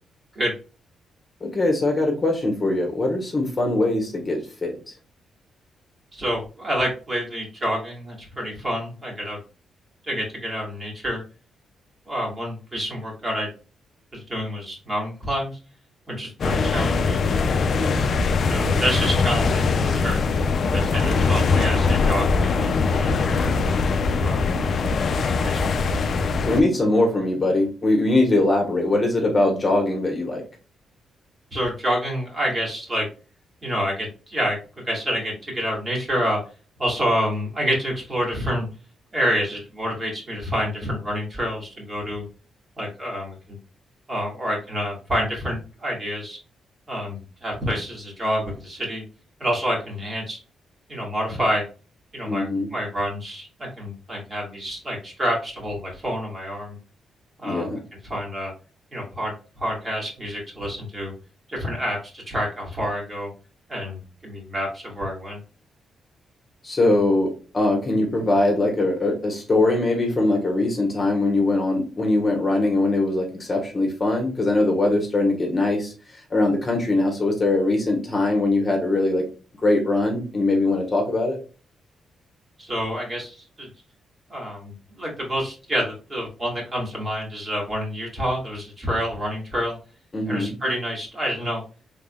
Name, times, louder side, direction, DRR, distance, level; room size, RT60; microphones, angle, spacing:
voice 1, 1.4-4.7 17.7-18.1 26.5-30.4 52.3-52.7 57.4-57.8 66.6-75.9 76.3-79.2 79.6-81.4 90.1-90.6, left 2 dB, 30° left, 1 dB, 1.2 m, -22 dB
voice 2, 6.1-9.4 10.1-11.2 12.1-13.5 14.1-15.5 16.1-17.6 18.3-20.2 20.6-23.5 24.1-24.5 25.3-25.8 31.5-33.1 33.6-34.6 34.8-36.4 36.8-38.7 39.1-42.3 42.8-43.6 44.1-46.4 46.9-49.1 49.4-50.4 50.9-51.6 52.1-56.8 57.4-57.7 58.0-58.5 58.9-61.1 61.5-63.3 63.7-65.4 82.6-83.7 84.3-89.8 90.3-91.6, equal, 30° right, -2 dB, 2.0 m, -28 dB
sound 1, 16.4-26.6, left 4 dB, 55° left, 0.4 m, -21 dB
3.7 x 3.6 x 2.3 m, 0.34 s
cardioid pair, 95°, 0 cm